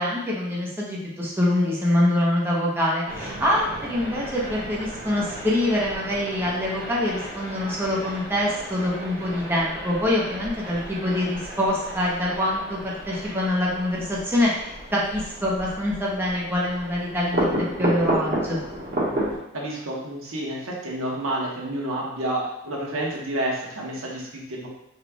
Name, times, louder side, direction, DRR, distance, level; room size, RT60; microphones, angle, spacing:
voice 1, 0.0-17.4 17.8-18.6, left 1 dB, 10° right, -5 dB, 0.9 m, -25 dB
sound 1, 3.1-19.4, right 1 dB, 50° right, 1.4 m, -32 dB
voice 2, 19.5-24.7, right 1 dB, 80° right, -3 dB, 1.2 m, -29 dB
5.1 x 4.1 x 2.3 m, 0.81 s
head